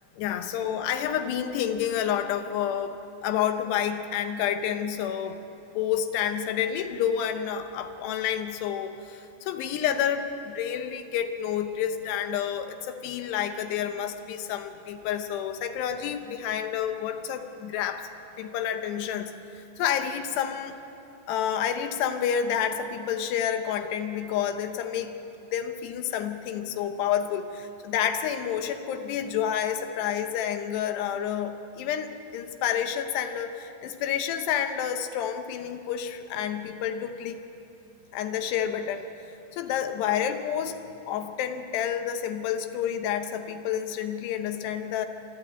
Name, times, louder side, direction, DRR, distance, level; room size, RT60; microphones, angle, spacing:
voice 1, 0.2-5.4 5.7-18.0 18.4-20.8 21.3-25.2 25.5-37.4 38.1-39.1 39.5-45.1, left 9 dB, 75° left, 7 dB, 3.0 m, -29 dB
26.5 x 12.0 x 8.6 m, 2.7 s
omnidirectional pair, 5.0 m